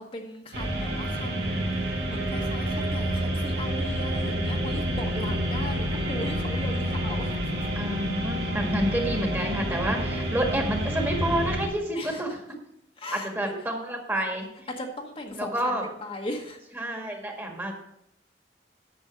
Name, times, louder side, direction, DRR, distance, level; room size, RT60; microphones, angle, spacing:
voice 1, 0.0-7.5 11.9-12.4 13.0-13.6 14.7-16.6, left 1 dB, 35° left, 1 dB, 1.2 m, -38 dB
sound 1, 0.5-11.7, equal, 70° right, 2.2 m, -28 dB
voice 2, 7.7-12.4 13.1-14.4 15.3-15.8 16.8-17.8, right 1 dB, 15° right, 2 dB, 1.7 m, -29 dB
10.0 x 6.9 x 5.2 m, 0.79 s
head